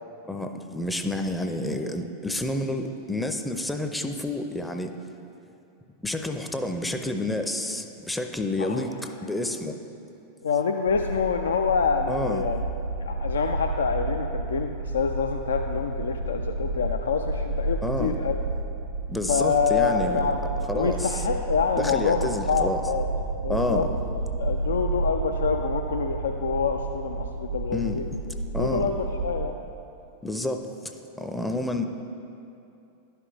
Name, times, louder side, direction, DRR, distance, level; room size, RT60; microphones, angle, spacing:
voice 1, 0.3-4.9 6.0-9.8 12.1-12.4 17.8-18.2 19.1-20.3 20.7-21.3 21.8-22.8 23.5-23.9 27.7-28.0 28.5-28.8 30.2-31.8, left 1 dB, 5° left, 5 dB, 0.5 m, -29 dB
voice 2, 10.4-12.6 13.0-18.3 19.3-23.0 23.4-23.9 24.4-28.0 28.6-29.6, left 5 dB, 75° left, 4 dB, 0.3 m, -26 dB
sound 1, 10.9-29.5, right 2 dB, 80° right, 0.7 m, -31 dB
11.0 x 5.8 x 3.3 m, 2.7 s
figure-of-eight pair, 90°, 0 cm